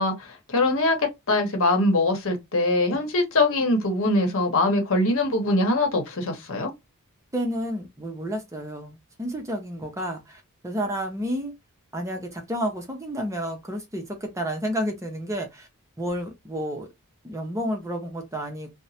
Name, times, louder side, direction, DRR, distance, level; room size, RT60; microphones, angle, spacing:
voice 1, 0.0-6.7, left 2 dB, 60° left, 0.9 m, -23 dB
voice 2, 7.3-11.5 11.9-15.7 16.0-16.9 17.2-18.7, equal, 15° right, 0.6 m, -30 dB
3.0 x 2.1 x 2.7 m
head